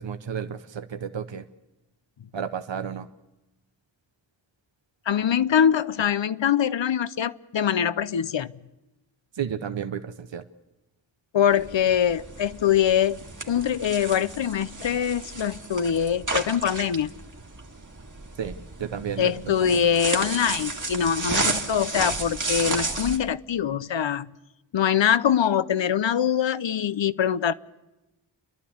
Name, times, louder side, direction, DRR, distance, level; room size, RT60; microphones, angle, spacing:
voice 1, 0.0-1.4 2.3-3.1 9.4-10.4 18.4-19.5, right 8 dB, 75° right, 9 dB, 0.9 m, -32 dB
voice 2, 5.1-8.5 11.3-13.2 13.5-17.1 19.2-24.4 24.7-27.5, left 8 dB, 75° left, 16 dB, 0.7 m, -23 dB
sound 1, 11.5-23.2, right 3 dB, 40° right, 2.1 m, -32 dB
29.5 x 11.5 x 8.5 m, 0.99 s
cardioid pair, 45°, 45 cm